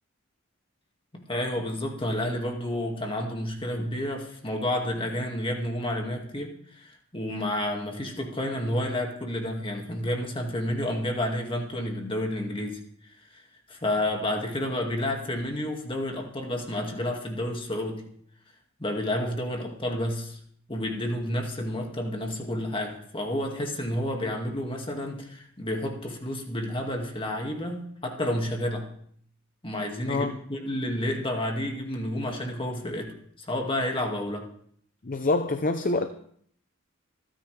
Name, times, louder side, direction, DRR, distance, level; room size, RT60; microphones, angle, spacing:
voice 1, 1.1-12.8 13.3-13.4 13.7-18.0 18.8-20.4 20.7-28.9 29.6-33.1 33.5-34.5, left 1 dB, 25° left, 2.1 m, -30 dB
voice 2, 35.0-36.1, left 2 dB, 40° left, 0.7 m, -26 dB
26.0 x 10.0 x 3.4 m
head